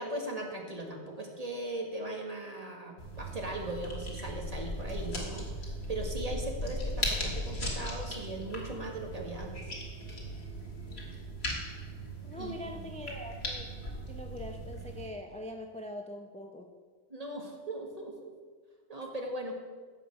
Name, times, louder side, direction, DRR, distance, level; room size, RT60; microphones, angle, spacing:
voice 1, 0.0-9.7 12.4-12.9 17.1-18.4 18.9-19.5, right 1 dB, 35° right, 1 dB, 1.9 m, -39 dB
sound 1, 3.0-15.1, equal, 60° left, 2.5 m, -38 dB
voice 2, 12.2-13.7 14.1-16.7, left 1 dB, 5° left, 3 dB, 0.6 m, -42 dB
15.0 x 5.6 x 7.1 m, 1.5 s
omnidirectional pair, 1.2 m